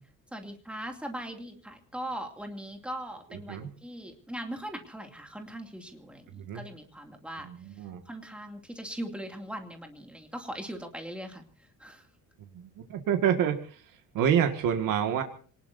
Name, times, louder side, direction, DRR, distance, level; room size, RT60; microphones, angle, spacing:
voice 1, 0.3-7.5 8.1-11.4 11.8-12.1, right 1 dB, 5° right, 4 dB, 2.6 m, -40 dB
voice 2, 6.3-6.7 7.4-8.0 12.5-13.8 14.1-15.2, right 9 dB, 85° right, 5 dB, 2.0 m, -27 dB
26.5 x 19.5 x 2.7 m, 0.43 s
cardioid pair, 170°, 32 cm